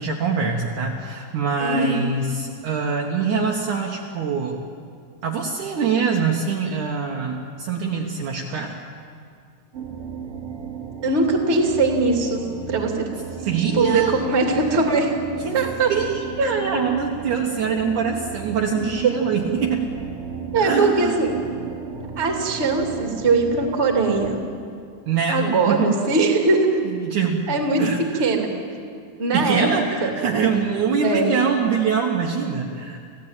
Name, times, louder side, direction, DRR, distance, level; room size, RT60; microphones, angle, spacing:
voice 1, 0.0-4.7 5.2-8.7 13.4-14.2 15.4-19.9 20.6-21.2 25.1-25.9 26.8-28.1 29.3-33.0, right 5 dB, 90° right, 0 dB, 1.7 m, -24 dB
voice 2, 1.6-2.1 11.0-12.4 12.7-13.0 13.7-15.1 15.5-15.9 16.4-16.5 20.5-21.3 22.1-24.4 25.3-26.8 27.5-27.8 28.2-28.5 29.2-29.7 30.0-30.1 31.0-31.4, right 3 dB, 25° right, 2 dB, 1.5 m, -20 dB
sound 1, 9.7-24.4, right 6 dB, 70° right, 1.4 m, -34 dB
27.5 x 16.5 x 9.0 m, 2.3 s
omnidirectional pair, 5.9 m